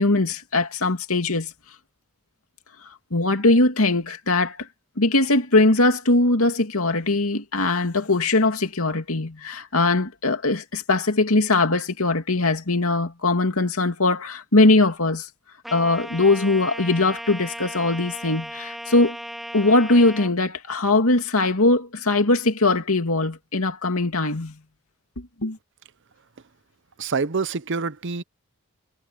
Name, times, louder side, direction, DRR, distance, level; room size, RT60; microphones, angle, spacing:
voice 1, 0.0-1.5 3.1-4.6 5.0-15.3 15.7-19.2 19.5-24.6 25.4-25.6, left 2 dB, 85° left, 2.5 m, -21 dB
Trumpet, 15.6-20.3, equal, ahead, 3.9 m, -36 dB
voice 2, 27.0-28.2, right 4 dB, 60° right, 0.8 m, -26 dB
head